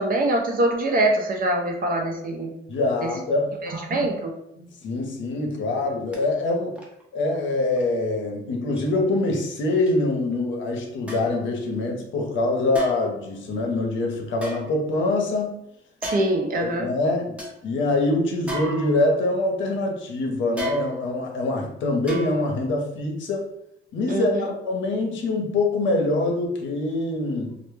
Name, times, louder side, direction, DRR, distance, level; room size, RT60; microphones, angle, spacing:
voice 1, 0.0-2.5 3.9-4.3 16.0-16.9 24.1-24.4, right 1 dB, 45° right, 2 dB, 0.5 m, -23 dB
voice 2, 2.7-3.6 4.6-6.8 7.1-15.6 16.6-23.5 23.9-27.6, left 2 dB, 70° left, 2 dB, 0.6 m, -24 dB
sound 1, 6.1-6.2 6.7-7.0 7.8-7.9 8.8-8.9 9.9-10.0 11.1-11.4 12.7-13.2 14.3-15.2 16.0-16.5 17.0-17.1 17.4-17.6 18.5-19.3 20.6-21.2 22.1-22.6 23.0-23.1, left 1 dB, 5° right, 0.6 m, -35 dB
2.1 x 2.0 x 3.1 m, 0.79 s
cardioid pair, 90°, 20 cm